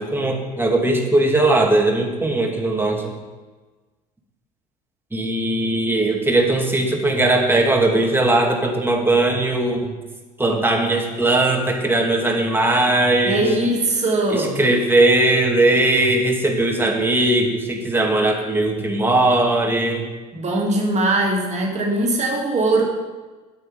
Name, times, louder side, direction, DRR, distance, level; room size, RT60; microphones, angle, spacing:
voice 1, 0.0-3.1 5.1-9.9 10.4-13.5 14.3-20.1, right 2 dB, 10° right, 1 dB, 2.3 m, -19 dB
voice 2, 13.2-14.6 20.3-22.8, right 2 dB, 35° right, 0 dB, 2.5 m, -20 dB
9.0 x 8.9 x 5.0 m, 1.3 s
figure-of-eight pair, 65°, 21 cm